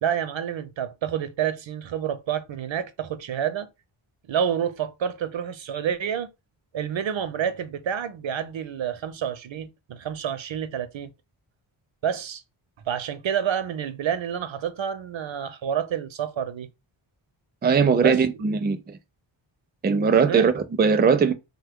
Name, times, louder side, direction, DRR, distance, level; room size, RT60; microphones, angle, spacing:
voice 1, 0.0-3.7 4.3-6.3 6.7-11.1 12.0-12.4 12.9-16.7 18.0-18.2 20.3-20.5, right 8 dB, 65° right, 0.6 m, -28 dB
voice 2, 17.6-19.0 19.8-21.3, right 5 dB, 20° right, 0.4 m, -20 dB
3.1 x 2.2 x 3.5 m
wide cardioid pair, 85°, 50 cm